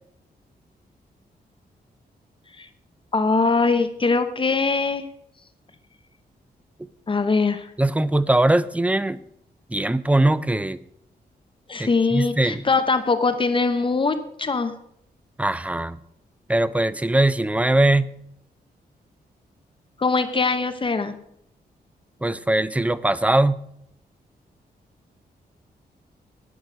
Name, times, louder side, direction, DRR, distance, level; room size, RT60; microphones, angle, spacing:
voice 1, 3.1-5.0 7.1-7.7 11.7-14.7 20.0-21.2, left 4 dB, 30° left, 9 dB, 0.9 m, -22 dB
voice 2, 7.8-9.2 9.7-10.8 11.8-12.6 15.4-16.0 16.5-18.1 22.2-23.6, right 1 dB, 10° right, 15 dB, 0.5 m, -21 dB
11.0 x 9.5 x 6.3 m, 0.73 s
wide cardioid pair, 140°, 17 cm